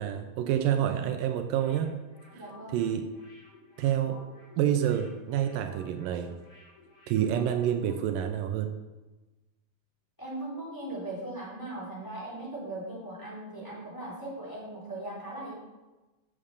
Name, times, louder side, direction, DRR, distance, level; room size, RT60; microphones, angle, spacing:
voice 1, 0.0-1.9 2.3-2.4 2.7-3.0 3.8-4.2 4.6-6.3 7.1-8.8, right 10 dB, 80° right, 6 dB, 2.4 m, -28 dB
sound 1, 1.5-8.1 8.4-8.5, left 2 dB, 80° left, 4.3 m, -55 dB
voice 2, 2.3-2.8 10.2-15.5, right 1 dB, 5° left, -6 dB, 3.6 m, -39 dB
8.8 x 7.4 x 6.6 m, 1.1 s
omnidirectional pair, 3.9 m